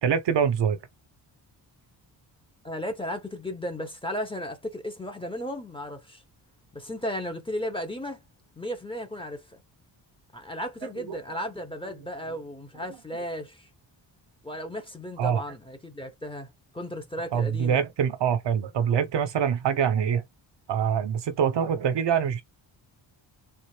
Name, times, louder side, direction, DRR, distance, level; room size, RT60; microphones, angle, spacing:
voice 1, 0.0-0.8 11.1-11.2 15.2-15.4 17.3-20.2 20.7-22.4, right 8 dB, 65° right, 0.8 m, -24 dB
voice 2, 2.6-6.2 6.7-8.2 8.6-9.6 10.3-13.7 14.4-17.8, equal, 10° left, 1.0 m, -35 dB
3.4 x 2.5 x 3.2 m
wide cardioid pair, 120°, 46 cm